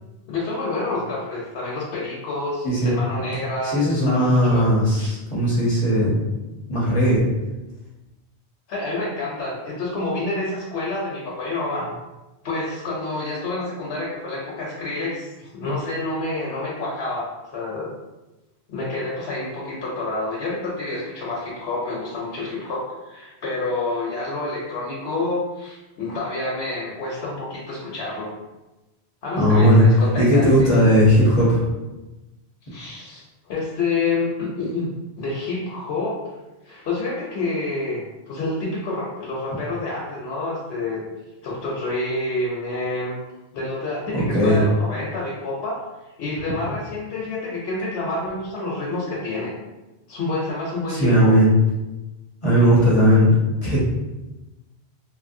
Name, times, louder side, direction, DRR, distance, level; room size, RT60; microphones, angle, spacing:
voice 1, 0.3-5.1 8.7-11.9 12.4-17.9 18.7-28.3 29.2-30.7 32.6-36.2 36.6-41.0 41.4-43.2 43.5-45.8 46.2-49.5 50.1-51.4, left 2 dB, 75° left, -5 dB, 0.9 m, -28 dB
voice 2, 3.6-6.2 6.7-7.3 29.4-29.8 30.2-31.6 44.1-44.6 50.9-51.5 52.4-53.3 53.6-53.8, equal, 35° left, -7 dB, 0.7 m, -17 dB
2.9 x 2.5 x 2.6 m, 1.1 s
omnidirectional pair, 1.1 m